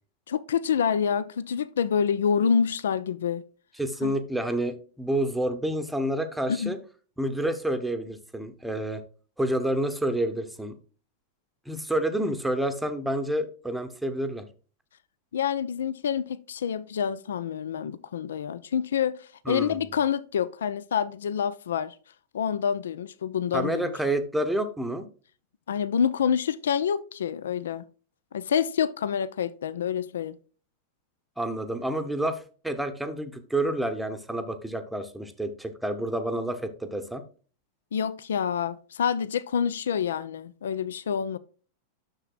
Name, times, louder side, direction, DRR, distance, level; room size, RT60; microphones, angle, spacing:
voice 1, 0.3-3.4 4.0-4.2 6.5-6.8 15.3-21.9 22.3-23.9 25.7-27.8 28.3-30.4 37.9-41.4, left 7 dB, 65° left, 0.4 m, -27 dB
voice 2, 3.8-6.8 7.2-9.0 9.4-10.7 11.7-14.4 19.5-19.9 23.5-25.1 31.4-37.2, right 1 dB, 5° right, 0.9 m, -29 dB
9.9 x 6.8 x 2.4 m
figure-of-eight pair, 90°, 0 cm